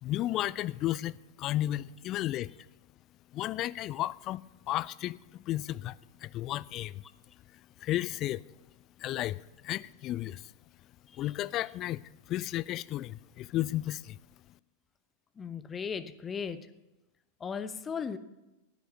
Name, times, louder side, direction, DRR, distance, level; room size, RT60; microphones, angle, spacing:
voice 1, 0.0-2.5 3.3-7.0 7.8-8.4 9.0-10.5 11.2-12.0 12.3-14.2, left 14 dB, 35° left, 0.4 m, -33 dB
voice 2, 15.4-16.7 17.4-18.2, left 6 dB, 20° left, 0.8 m, -37 dB
16.0 x 9.2 x 5.7 m
figure-of-eight pair, 90°, 0 cm